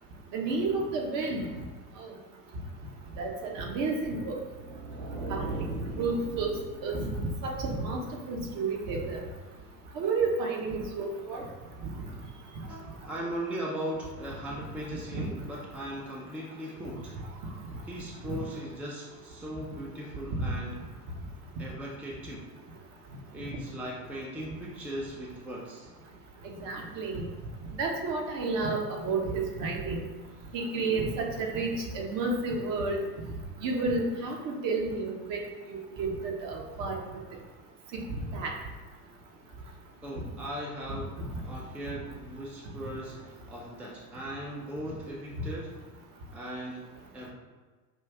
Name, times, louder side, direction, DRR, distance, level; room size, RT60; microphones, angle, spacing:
voice 1, 0.3-1.4 2.0-2.1 3.2-4.4 5.3-5.6 6.0-6.6 6.8-7.1 7.4-8.0 8.3-9.2 9.9-11.4 11.8-11.9 15.1-15.2 18.3-18.4 20.4-20.5 26.4-27.2 27.8-30.0 30.5-33.0 33.6-35.4 35.7-37.0 37.9-38.0 38.3-38.5 45.4-45.5, right 3 dB, 45° right, 1 dB, 1.0 m, -31 dB
sound 1, 4.4-7.3, right 2 dB, 60° right, 1.4 m, -38 dB
voice 2, 12.7-17.2 17.8-20.9 21.6-22.5 23.3-25.9 30.3-30.5 39.6-45.9 46.3-47.3, equal, 5° right, -3 dB, 0.4 m, -39 dB
5.4 x 2.5 x 3.4 m, 1.3 s
hypercardioid pair, 85°, 47 cm